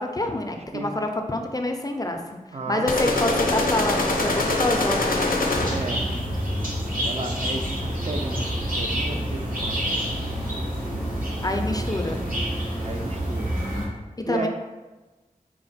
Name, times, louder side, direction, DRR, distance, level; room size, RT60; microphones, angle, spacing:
voice 1, 0.0-5.4 11.4-12.2 14.2-14.5, left 1 dB, 25° left, 4 dB, 0.4 m, -27 dB
voice 2, 2.5-3.2 5.7-6.1 7.0-9.9 11.7-11.9 12.8-13.6 14.3-14.5, right 3 dB, 45° right, 4 dB, 0.4 m, -34 dB
sound 1, 2.9-6.0, left 2 dB, 80° left, 0.5 m, -23 dB
sound 2, 5.5-13.8, equal, 70° right, 1.3 m, -28 dB
4.1 x 2.1 x 4.0 m, 1.2 s
wide cardioid pair, 45°, 15 cm